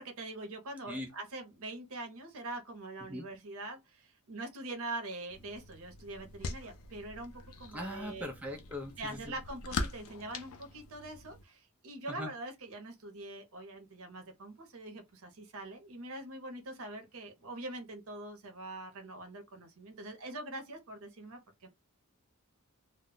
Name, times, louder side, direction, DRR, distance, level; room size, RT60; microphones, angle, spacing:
voice 1, 0.0-7.3 7.6-8.3 9.0-21.7, right 2 dB, 65° right, 0.7 m, -43 dB
sound 1, 5.3-11.4, left 3 dB, 70° left, 0.5 m, -43 dB
voice 2, 7.7-8.9 12.2-12.3, left 1 dB, 5° right, 0.5 m, -39 dB
2.2 x 2.0 x 3.7 m
head